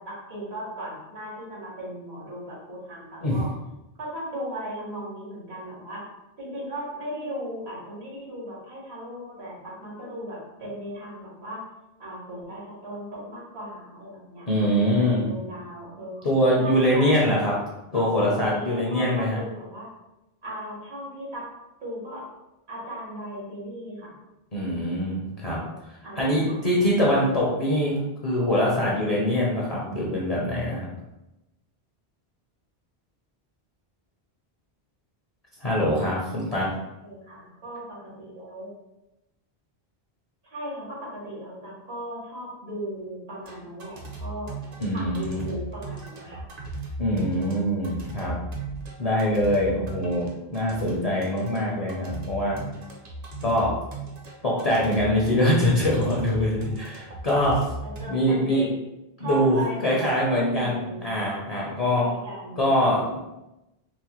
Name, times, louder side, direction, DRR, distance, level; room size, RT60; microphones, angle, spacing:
voice 1, 0.0-3.5 4.0-6.1 6.4-11.6 12.0-17.1 17.9-19.9 20.4-21.4 21.8-22.3 22.7-24.1 26.0-26.6 37.0-38.7 40.5-44.6 44.9-46.5 57.8-58.7 59.2-61.1 61.6-62.7, right 1 dB, 75° right, -7 dB, 1.6 m, -37 dB
voice 2, 14.5-15.3 16.2-17.6 17.9-19.4 24.5-25.6 26.2-30.8 35.6-36.7 44.8-45.4 47.0-48.3 49.0-52.6 53.4-53.7 54.4-57.6 58.1-58.7 59.2-62.1 62.6-63.2, equal, 45° left, -5 dB, 0.6 m, -23 dB
sound 1, 43.4-58.0, right 3 dB, 50° right, 0.6 m, -37 dB
4.0 x 2.1 x 3.0 m, 0.94 s
omnidirectional pair, 1.1 m